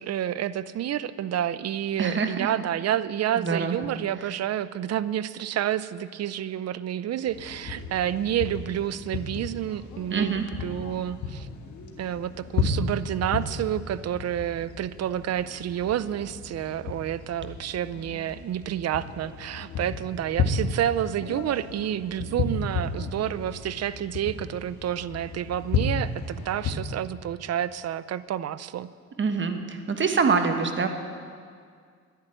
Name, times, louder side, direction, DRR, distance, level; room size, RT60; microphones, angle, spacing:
voice 1, 0.0-11.5 12.0-28.9, right 11 dB, 55° right, 16 dB, 0.6 m, -29 dB
voice 2, 2.0-2.5 3.4-3.8 10.1-10.4 29.2-30.9, right 5 dB, 40° right, 6 dB, 1.3 m, -25 dB
sound 1, 7.3-26.7, left 4 dB, 75° left, 1.6 m, -33 dB
11.0 x 10.5 x 8.9 m, 2.1 s
cardioid pair, 90°, 30 cm